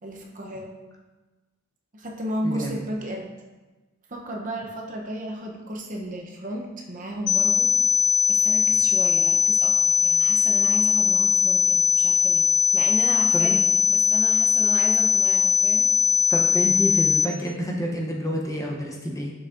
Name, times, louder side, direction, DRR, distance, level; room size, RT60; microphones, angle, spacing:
voice 1, 0.0-0.8 1.9-3.3 4.1-7.7 8.3-12.5 12.7-15.9, right 1 dB, 35° right, 0 dB, 0.7 m, -33 dB
voice 2, 2.4-2.8 13.3-13.6 16.3-19.3, equal, 15° left, -1 dB, 0.6 m, -28 dB
sound 1, 7.3-17.3, left 7 dB, 80° left, 0.4 m, -20 dB
6.6 x 6.1 x 2.5 m, 1.2 s
head